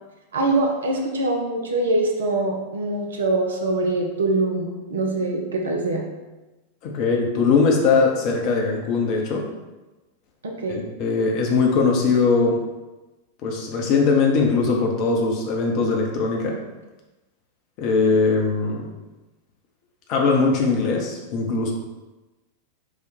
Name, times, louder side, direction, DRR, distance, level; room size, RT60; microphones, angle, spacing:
voice 1, 0.3-6.1 10.4-10.8, right 2 dB, 65° right, 1 dB, 0.7 m, -23 dB
voice 2, 6.8-9.4 10.7-12.6 13.4-16.6 17.8-18.9 20.1-21.7, left 4 dB, 40° left, 1 dB, 0.9 m, -20 dB
5.0 x 2.4 x 4.2 m, 1.1 s
figure-of-eight pair, 90°, 0 cm